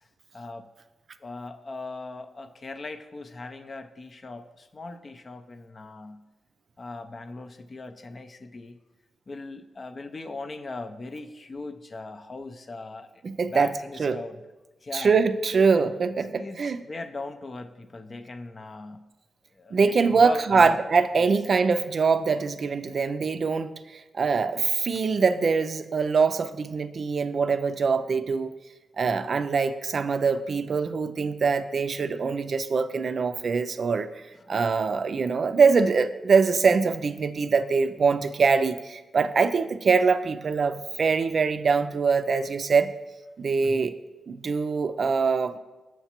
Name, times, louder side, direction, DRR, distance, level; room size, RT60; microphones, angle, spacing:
voice 1, 0.3-0.7 1.2-6.2 6.8-8.8 9.3-13.1 13.5-14.4 14.8-15.2 15.7-15.8 16.3-19.0 19.5-20.8 21.2-21.3 29.0-29.3 34.4-34.6 43.6-43.9, left 3 dB, 45° left, 8 dB, 0.4 m, -39 dB
voice 2, 13.2-13.7 14.0-14.2 14.9-16.8 19.7-23.7 24.1-28.5 29.0-34.1 34.5-42.9 43.4-43.9 44.3-45.6, right 5 dB, 60° right, 10 dB, 0.3 m, -23 dB
7.2 x 5.7 x 2.9 m, 1.1 s
cardioid pair, 60°, 0 cm